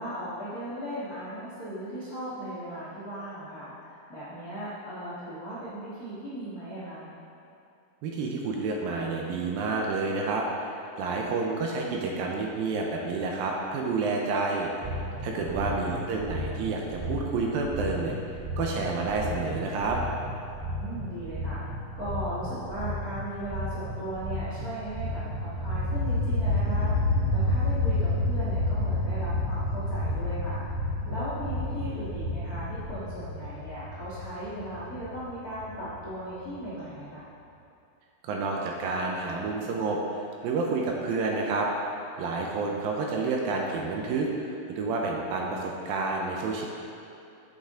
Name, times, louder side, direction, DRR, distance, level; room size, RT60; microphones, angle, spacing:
voice 1, 0.0-7.1 15.3-15.9 20.6-37.3, equal, 55° left, -10 dB, 1.0 m, -37 dB
voice 2, 8.0-14.7 15.2-18.2 18.6-20.0 38.2-41.7 42.2-46.6, right 3 dB, 80° right, 0 dB, 2.4 m, -29 dB
sound 1, 14.8-32.9, equal, 20° right, 0.7 m, -35 dB
sound 2, 25.1-36.6, left 2 dB, 45° right, 2.7 m, -29 dB
8.3 x 8.1 x 3.7 m, 2.7 s
omnidirectional pair, 4.4 m